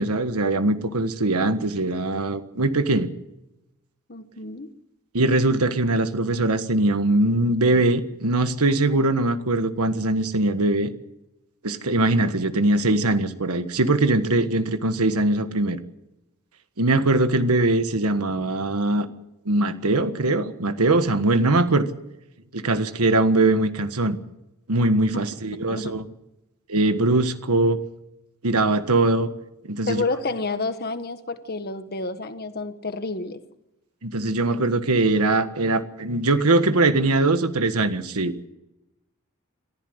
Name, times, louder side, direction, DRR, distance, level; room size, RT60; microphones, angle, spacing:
voice 1, 0.0-3.1 5.1-10.9 11.6-15.8 16.8-19.1 19.4-21.9 22.5-24.2 24.7-26.0 26.7-27.8 28.4-29.3 29.6-30.0 34.0-38.3, right 2 dB, 80° right, 10 dB, 1.5 m, -21 dB
voice 2, 4.1-4.7 25.1-25.2 25.7-26.0 29.9-33.4, left 3 dB, 45° left, 10 dB, 1.5 m, -29 dB
22.5 x 14.5 x 8.0 m, 0.93 s
head